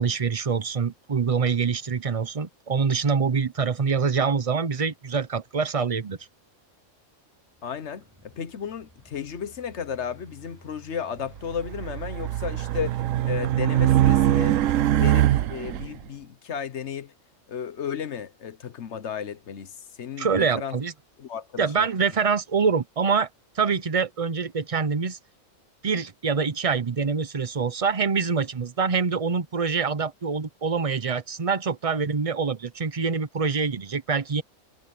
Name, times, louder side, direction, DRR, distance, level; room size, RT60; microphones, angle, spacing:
voice 1, 0.0-6.2 20.2-20.9 21.6-23.3 23.6-25.2 25.8-34.4, right 5 dB, 35° right, 0.7 m, -25 dB
Engine, 7.4-15.4, equal, 15° right, 2.8 m, -54 dB
voice 2, 7.6-14.6 14.9-17.1 17.5-20.8 21.2-21.9, left 7 dB, 65° left, 1.2 m, -34 dB
Race car auto racing, 11.5-15.9, right 12 dB, 80° right, 1.0 m, -22 dB
omnidirectional pair, 1.3 m